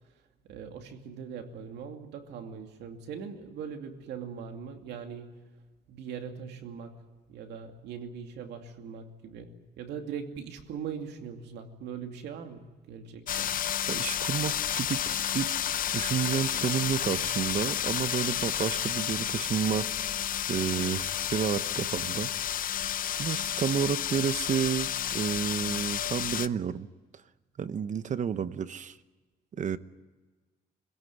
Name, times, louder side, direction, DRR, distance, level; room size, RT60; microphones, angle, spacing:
voice 1, 0.5-5.4 5.9-7.0 7.3-13.5, right 7 dB, 90° right, 5 dB, 2.6 m, -41 dB
sound 1, 13.3-26.5, left 10 dB, 55° left, 0.7 m, -31 dB
voice 2, 13.9-15.5 15.9-19.9 20.5-22.3 23.2-26.9 27.6-29.0 29.6-29.8, right 8 dB, 45° right, 14 dB, 1.0 m, -30 dB
26.0 x 16.5 x 9.5 m, 1.3 s
cardioid pair, 110°, 17 cm